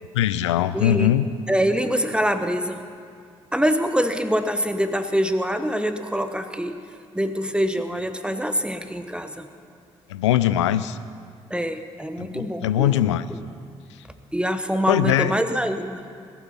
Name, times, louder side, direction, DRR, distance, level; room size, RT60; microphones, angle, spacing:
voice 1, 0.1-1.3 10.1-11.0 12.2-13.2 14.9-15.3, left 12 dB, 75° left, 15 dB, 0.4 m, -21 dB
voice 2, 0.7-1.2 1.5-2.9 3.5-6.8 7.1-9.5 11.5-12.9 13.3-13.4 14.3-16.0, equal, 5° right, 9 dB, 1.0 m, -24 dB
20.0 x 11.0 x 5.9 m, 2.3 s
figure-of-eight pair, 40°, 15 cm